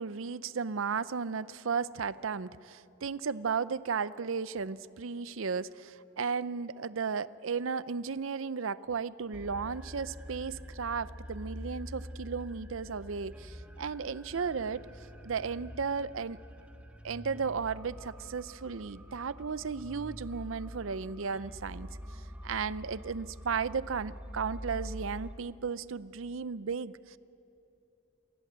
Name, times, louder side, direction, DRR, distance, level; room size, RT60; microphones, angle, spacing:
voice 1, 0.0-14.9 15.2-16.4 17.0-21.9 22.4-27.2, right 5 dB, 80° right, 16 dB, 0.6 m, -35 dB
sound 1, 9.3-25.3, equal, 5° right, 1.2 m, -45 dB
27.5 x 19.5 x 8.1 m, 2.8 s
head